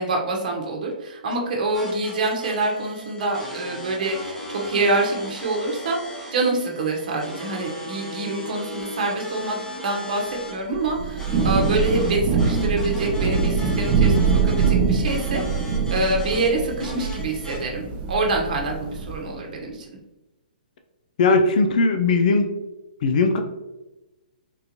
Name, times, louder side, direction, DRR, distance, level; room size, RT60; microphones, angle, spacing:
voice 1, 0.0-9.6 9.8-19.9, right 2 dB, 60° right, 0 dB, 0.9 m, -26 dB
sound 1, 1.7-17.6, left 1 dB, 10° left, 0.8 m, -37 dB
Thunder / Rain, 10.7-19.3, right 5 dB, 25° right, 0.5 m, -23 dB
voice 2, 21.2-22.5 23.0-23.4, left 3 dB, 55° left, 6 dB, 0.4 m, -18 dB
3.7 x 2.5 x 2.9 m, 1.0 s
hypercardioid pair, 140°, 5 cm